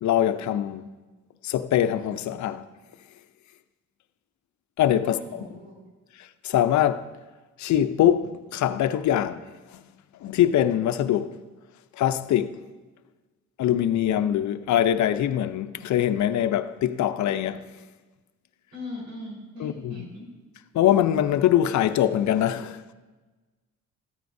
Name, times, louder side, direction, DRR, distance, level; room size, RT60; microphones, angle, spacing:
voice 1, 0.0-0.9 1.4-2.7 4.8-5.4 6.1-7.1 7.6-11.4 11.9-12.6 13.6-17.8 19.6-20.1 20.7-22.8, left 11 dB, 70° left, 0.6 m, -23 dB
voice 2, 5.0-5.8 18.7-20.3, left 2 dB, 90° right, 4.3 m, -39 dB
14.0 x 12.5 x 2.7 m
cardioid pair, 90°, 30 cm